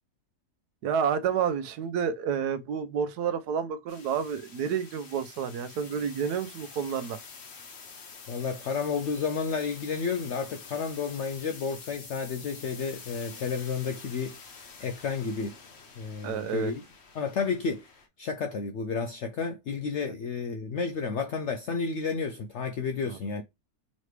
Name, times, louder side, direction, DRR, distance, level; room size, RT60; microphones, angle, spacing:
voice 1, 0.8-7.2 16.2-16.7 23.1-23.2, right 7 dB, 75° right, 1.2 m, -29 dB
sound 1, 3.9-18.1, left 5 dB, 50° left, 1.0 m, -47 dB
voice 2, 8.3-14.4 14.8-15.6 16.0-16.8 17.1-17.9 18.2-23.4, left 5 dB, 75° left, 0.6 m, -31 dB
4.0 x 3.1 x 3.2 m
omnidirectional pair, 1.7 m